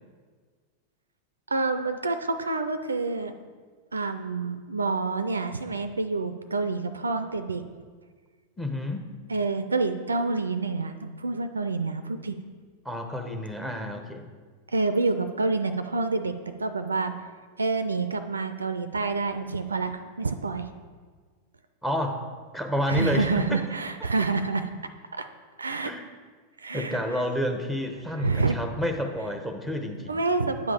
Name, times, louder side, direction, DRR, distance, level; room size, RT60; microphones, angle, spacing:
voice 1, 1.5-3.3 3.9-7.6 9.3-12.4 14.7-16.3 16.6-17.1 17.6-20.7 22.9-24.7 25.1-25.3 25.6-25.9 26.6-27.0 28.2-28.6 30.1-30.7, right 3 dB, 75° right, 9 dB, 0.4 m, -27 dB
voice 2, 8.6-9.1 12.8-14.3 21.8-22.2 22.5-23.6 25.8-26.0 26.7-30.2, left 1 dB, 5° left, 5 dB, 0.9 m, -30 dB
8.9 x 3.7 x 6.8 m, 1.6 s
figure-of-eight pair, 90°, 0 cm